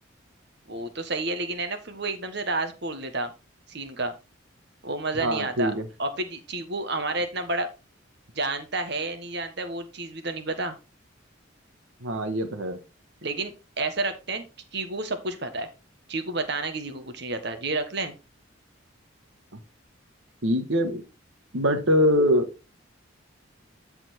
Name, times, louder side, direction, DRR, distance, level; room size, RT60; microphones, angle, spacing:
voice 1, 0.7-3.3 3.7-4.1 4.8-5.7 6.0-7.7 8.3-10.7 13.2-14.4 14.7-15.7 16.1-18.1, right 2 dB, 60° right, 8 dB, 1.5 m, -30 dB
voice 2, 5.2-5.8 12.0-12.8 20.4-21.0 21.5-22.5, equal, 80° right, 8 dB, 1.4 m, -23 dB
12.5 x 4.4 x 4.3 m, 0.29 s
head